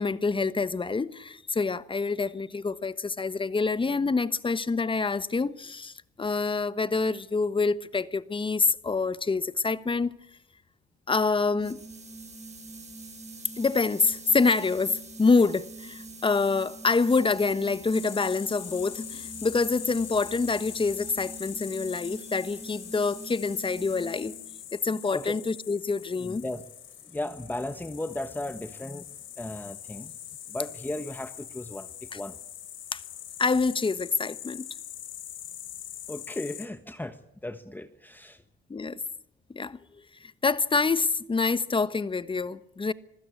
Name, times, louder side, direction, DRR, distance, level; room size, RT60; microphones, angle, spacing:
voice 1, 0.0-10.1 11.1-11.8 13.6-24.3 24.7-26.4 32.1-32.2 32.9-33.0 33.4-34.7 38.7-39.0 39.5-39.8 40.2-42.9, left 4 dB, 25° left, 1.2 m, -26 dB
sound 1, 11.6-24.5, right 2 dB, 35° right, 6.9 m, -44 dB
sound 2, 17.9-36.7, left 10 dB, 80° left, 3.8 m, -43 dB
voice 2, 25.1-25.4 26.2-26.6 27.0-29.0 29.4-30.1 30.5-32.4 36.1-38.4, left 1 dB, 10° left, 1.4 m, -36 dB
25.5 x 15.5 x 8.5 m
cardioid pair, 90°, 20 cm